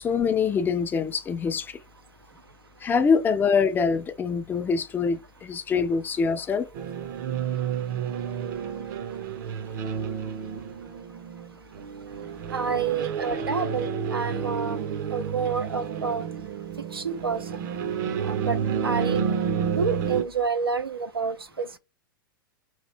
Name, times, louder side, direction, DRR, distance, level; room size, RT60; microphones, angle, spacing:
voice 1, 0.0-1.8 2.8-6.7, left 5 dB, 15° left, 0.4 m, -24 dB
sound 1, 6.7-20.2, right 7 dB, 50° right, 0.7 m, -30 dB
voice 2, 12.5-14.8 15.1-16.2 16.9-17.4 18.2-18.6 18.8-19.2 19.7-21.8, right 5 dB, 90° right, 0.5 m, -28 dB
3.0 x 2.4 x 3.2 m
figure-of-eight pair, 100°, 12 cm